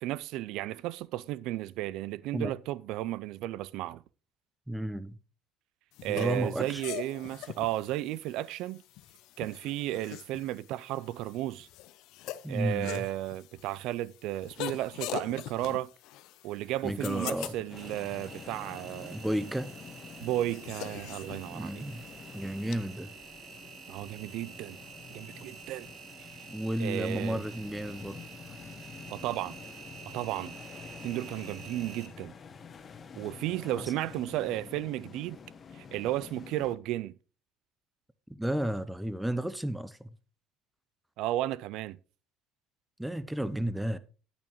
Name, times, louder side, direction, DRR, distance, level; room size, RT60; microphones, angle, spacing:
voice 1, 0.0-4.0 6.0-8.8 9.4-11.7 12.5-15.9 16.4-19.2 20.2-21.8 23.9-24.8 25.1-25.9 26.8-27.4 29.1-29.6 30.1-30.6 31.0-32.3 33.2-35.4 35.7-37.1 41.2-42.0, right 15 dB, 70° right, 0.3 m, -34 dB
voice 2, 4.7-5.1 6.0-6.8 12.4-13.1 16.8-17.5 19.0-19.7 21.5-22.0 22.3-23.1 26.5-28.2 33.8-33.9 38.3-40.1 43.0-44.0, right 1 dB, 5° right, 0.6 m, -32 dB
sound 1, 5.9-22.8, left 14 dB, 70° left, 0.5 m, -44 dB
sound 2, 17.7-36.8, left 6 dB, 35° left, 1.0 m, -48 dB
Engine, 17.8-32.1, right 6 dB, 50° right, 2.0 m, -49 dB
8.8 x 8.7 x 3.0 m
supercardioid pair, 100°, 0 cm